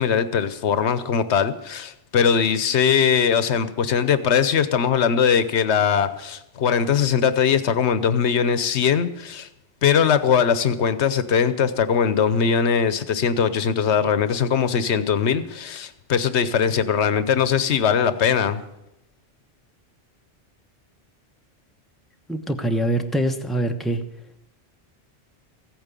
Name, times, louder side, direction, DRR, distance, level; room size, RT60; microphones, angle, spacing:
voice 1, 0.0-9.5 9.8-18.6, left 7 dB, 75° left, 13 dB, 1.2 m, -20 dB
voice 2, 22.3-24.0, right 1 dB, ahead, 4 dB, 0.9 m, -24 dB
15.5 x 8.9 x 8.3 m, 0.84 s
omnidirectional pair, 1.1 m